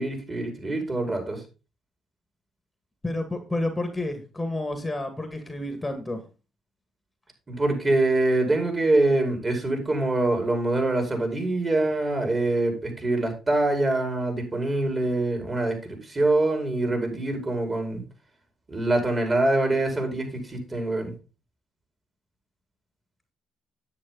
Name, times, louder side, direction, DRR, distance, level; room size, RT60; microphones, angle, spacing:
voice 1, 0.0-1.4 7.5-18.0 18.7-21.1, right 2 dB, 30° right, 4 dB, 5.1 m, -24 dB
voice 2, 3.0-6.2, left 2 dB, 15° left, 7 dB, 2.0 m, -30 dB
9.8 x 8.4 x 4.0 m, 0.30 s
supercardioid pair, 70°, 0 cm